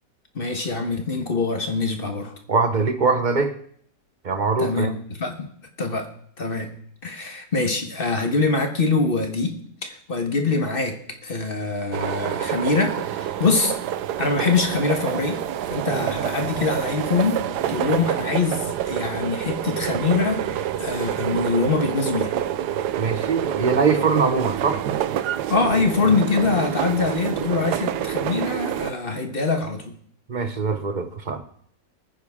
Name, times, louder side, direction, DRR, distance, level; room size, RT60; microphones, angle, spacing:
voice 1, 0.3-2.3 4.6-5.5 5.8-6.1 6.4-6.7 7.0-13.7 14.2-15.4 15.7-17.4 17.7-22.3 25.5-29.9, left 4 dB, 35° left, 5 dB, 1.3 m, -24 dB
voice 2, 2.5-3.5 4.2-4.9 23.0-24.8 30.3-31.4, right 4 dB, 45° right, 8 dB, 0.6 m, -22 dB
sound 1, 11.9-28.9, right 11 dB, 75° right, 1.2 m, -27 dB
21.0 x 9.6 x 3.6 m, 0.64 s
omnidirectional pair, 1.9 m